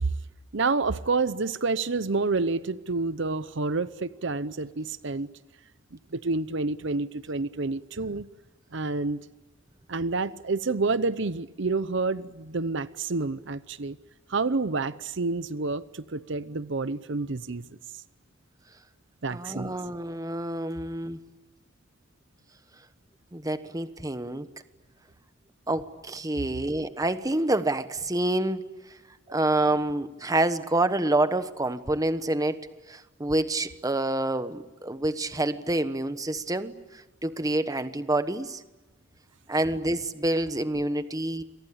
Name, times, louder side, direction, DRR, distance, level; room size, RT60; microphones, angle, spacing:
voice 1, 0.5-5.3 5.9-8.3 8.7-9.2 9.9-14.0 14.3-17.6 19.2-19.8, right 3 dB, 65° right, 15 dB, 0.8 m, -29 dB
voice 2, 19.3-21.2 23.3-24.5 25.7-28.6 29.3-32.6 32.9-38.6 39.5-41.4, right 1 dB, 20° right, 11 dB, 1.2 m, -27 dB
29.0 x 24.0 x 8.6 m, 1.2 s
head